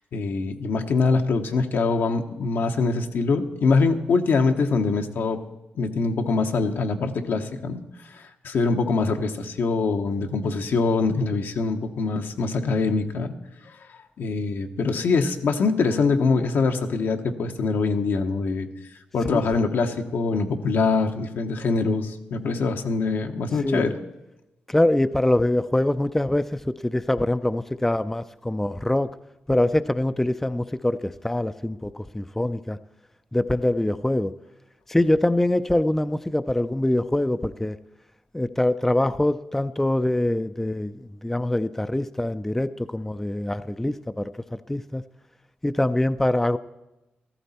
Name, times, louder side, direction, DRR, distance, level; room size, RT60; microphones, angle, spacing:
voice 1, 0.1-5.4 5.7-13.3 14.2-18.7 19.1-23.9, left 4 dB, 75° left, 5 dB, 1.1 m, -24 dB
voice 2, 23.6-23.9 24.7-29.1 29.5-32.8 33.3-34.4 34.9-37.8 38.3-45.0 45.6-46.6, left 1 dB, 10° left, 12 dB, 0.4 m, -24 dB
14.5 x 14.0 x 4.3 m, 1.0 s
cardioid pair, 75°, 4 cm